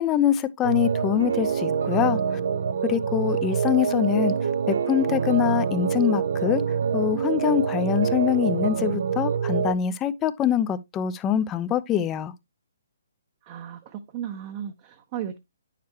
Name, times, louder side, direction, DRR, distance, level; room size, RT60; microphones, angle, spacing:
voice 1, 0.0-2.2 2.8-4.3 4.7-6.6 6.9-12.3, left 10 dB, 20° left, 0.7 m, -24 dB
sound 1, 0.6-9.7, right 6 dB, 65° right, 0.7 m, -25 dB
voice 2, 13.4-15.4, right 9 dB, 35° right, 1.0 m, -35 dB
9.2 x 6.7 x 3.0 m
hypercardioid pair, 140°, 0 cm